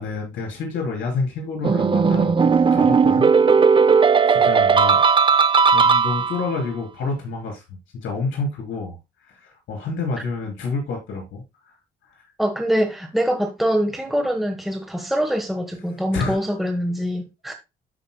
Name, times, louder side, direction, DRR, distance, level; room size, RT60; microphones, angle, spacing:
voice 1, 0.0-3.3 4.3-5.0 5.7-9.0 9.3-11.7 16.1-16.4, left 4 dB, 75° left, 3.7 m, -28 dB
sound 1, 1.6-6.6, right 5 dB, 25° right, 0.5 m, -16 dB
voice 2, 12.4-17.5, equal, ahead, 1.3 m, -24 dB
12.5 x 5.3 x 2.2 m
cardioid pair, 90°, 20 cm